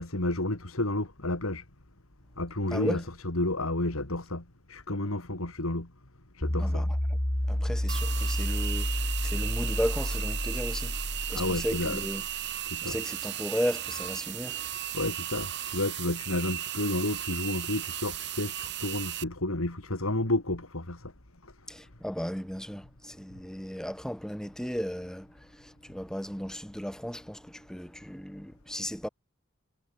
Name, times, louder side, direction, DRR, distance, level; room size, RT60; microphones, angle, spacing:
voice 1, 0.0-1.6 2.4-5.9 6.3-6.8 11.3-12.0 12.6-13.0 14.9-21.1, left 2 dB, 90° left, 3.2 m, -31 dB
voice 2, 2.7-3.0 6.6-7.0 7.5-11.0 11.3-12.2 12.8-14.7 21.7-29.1, equal, 5° left, 1.3 m, -35 dB
sound 1, 6.4-12.7, left 1 dB, 25° left, 1.8 m, -30 dB
sound 2, 7.9-19.2, right 12 dB, 55° right, 2.9 m, -36 dB
head